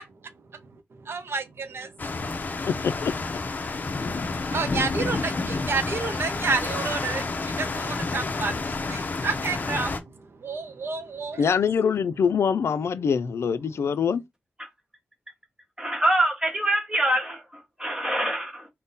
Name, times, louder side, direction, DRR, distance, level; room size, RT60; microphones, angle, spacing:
voice 1, 1.0-2.4 4.5-10.0 10.4-11.5, right 4 dB, 65° right, 0.5 m, -30 dB
sound 1, 2.0-10.0, left 3 dB, 40° left, 0.6 m, -29 dB
voice 2, 2.7-3.1 11.4-14.2, left 6 dB, 85° left, 0.4 m, -24 dB
voice 3, 15.8-18.7, right 1 dB, 15° right, 1.1 m, -25 dB
3.7 x 2.1 x 4.0 m
wide cardioid pair, 130°, 4 cm